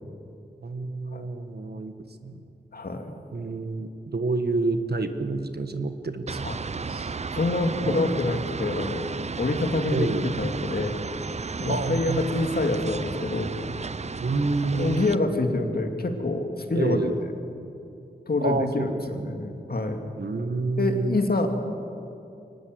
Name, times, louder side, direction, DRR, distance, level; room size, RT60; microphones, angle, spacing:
voice 1, 0.6-1.9 2.2-2.4 3.3-6.5 6.9-7.1 7.8-8.0 9.9-10.3 11.7-12.4 14.2-15.0 16.7-17.2 18.4-19.4 20.2-21.2, right 3 dB, 65° right, 8 dB, 1.4 m, -28 dB
voice 2, 2.7-3.1 6.4-6.6 7.3-9.1 9.4-11.0 11.6-13.9 14.7-17.1 18.3-20.1 20.8-21.5, left 2 dB, 60° left, 5 dB, 2.2 m, -26 dB
sound 1, 6.3-15.2, right 4 dB, 40° right, 0.5 m, -34 dB
23.5 x 19.0 x 7.8 m, 2.6 s
wide cardioid pair, 95°, 18 cm